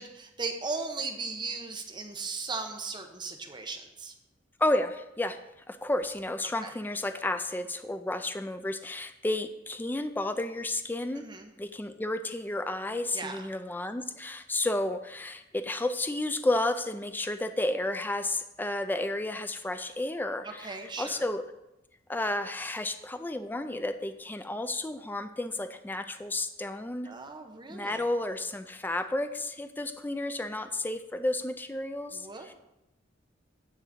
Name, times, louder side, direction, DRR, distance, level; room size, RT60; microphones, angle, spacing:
voice 1, 0.0-4.1 6.6-6.7 11.2-11.5 13.1-13.4 20.6-21.2 27.0-28.0 32.1-32.5, right 4 dB, 25° right, 4 dB, 0.8 m, -37 dB
voice 2, 4.6-5.4 5.7-11.2 11.6-21.4 22.1-27.1 27.7-32.5, left 1 dB, 10° left, 9 dB, 0.3 m, -32 dB
9.1 x 4.0 x 7.2 m, 0.91 s
head